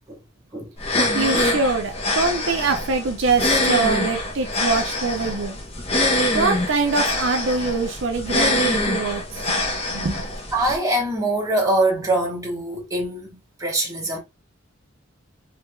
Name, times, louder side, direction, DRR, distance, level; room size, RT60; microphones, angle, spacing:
voice 1, 0.5-1.5 5.4-5.5 10.5-14.2, right 1 dB, 15° right, 1.1 m, -24 dB
sound 1, 0.8-10.8, left 1 dB, 30° left, 0.8 m, -24 dB
voice 2, 1.1-5.6 6.3-9.6 9.9-10.3, right 4 dB, 65° right, 0.6 m, -24 dB
3.3 x 3.2 x 2.2 m
head